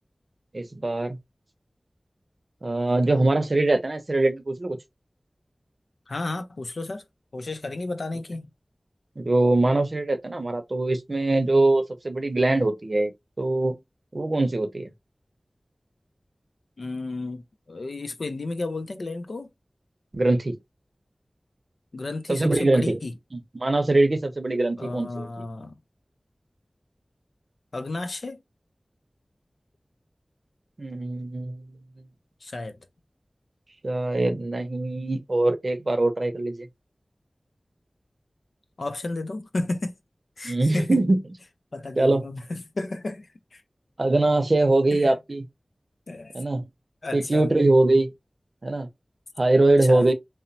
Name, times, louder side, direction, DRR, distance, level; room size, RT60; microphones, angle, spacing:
voice 1, 0.5-1.2 2.6-4.8 9.2-13.1 13.4-13.8 14.1-14.9 20.1-20.6 22.3-23.0 23.3-25.3 30.8-32.1 33.8-36.7 40.4-41.2 42.0-42.2 44.0-45.4 46.3-46.7 47.1-48.1 48.6-48.9 49.4-50.1, right 2 dB, 55° right, 0.6 m, -22 dB
voice 2, 6.1-7.0 7.3-8.5 16.8-19.5 21.9-23.1 24.0-24.1 24.8-25.8 27.7-28.4 32.4-32.8 38.8-39.9 40.4-41.0 41.7-43.6 44.9-45.1 46.1-46.3 47.0-47.5 49.9-50.1, left 2 dB, 80° left, 0.4 m, -32 dB
2.9 x 2.0 x 2.6 m
wide cardioid pair, 60°, 0 cm